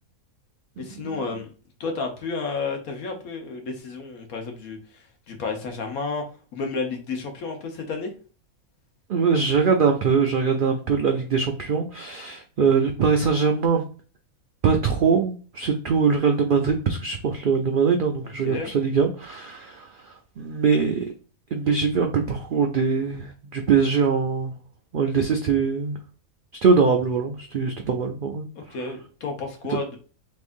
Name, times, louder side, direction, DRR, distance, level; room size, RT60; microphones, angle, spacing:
voice 1, 0.8-1.5 1.8-6.2 6.5-8.1 18.4-18.7 28.5-30.0, left 4 dB, 80° left, 3 dB, 1.3 m, -31 dB
voice 2, 9.1-13.8 14.6-21.1 21.5-24.5 24.9-26.0 26.6-28.5 29.7-29.8, right 5 dB, 85° right, 4 dB, 0.4 m, -22 dB
3.6 x 3.3 x 2.5 m, 0.37 s
omnidirectional pair, 1.5 m